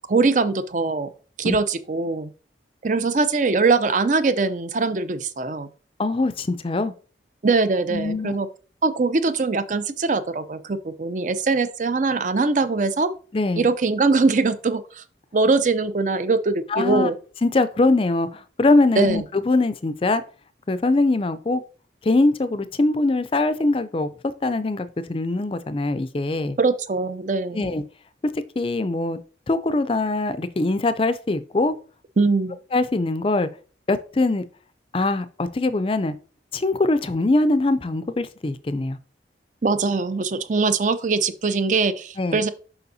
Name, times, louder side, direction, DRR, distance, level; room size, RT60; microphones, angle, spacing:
voice 1, 0.1-1.1 1.4-2.3 2.8-5.7 7.4-8.5 8.8-13.1 13.6-15.0 15.3-17.1 19.0-19.2 26.6-27.7 32.2-32.6 39.6-42.5, right 3 dB, 45° right, 0.5 m, -22 dB
voice 2, 6.0-6.9 7.9-8.4 13.3-13.7 16.7-17.1 17.4-20.2 20.7-21.6 22.0-26.6 27.5-27.8 28.2-29.2 29.5-31.8 32.7-33.5 33.9-34.4 34.9-36.1 36.5-39.0 42.2-42.4, left 2 dB, 30° left, 0.4 m, -22 dB
6.8 x 5.4 x 2.7 m
head